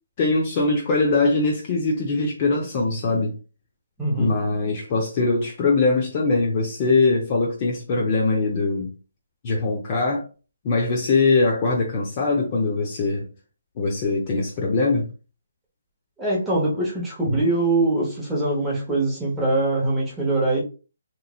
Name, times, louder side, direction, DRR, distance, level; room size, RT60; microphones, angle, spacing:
voice 1, 0.2-3.3 4.2-8.9 9.4-10.3 10.6-13.3 13.8-15.1, left 3 dB, 30° left, 0.5 m, -22 dB
voice 2, 4.0-4.3 16.2-20.6, right 2 dB, 5° right, 0.9 m, -23 dB
3.0 x 2.4 x 2.4 m
hypercardioid pair, 165°, 0 cm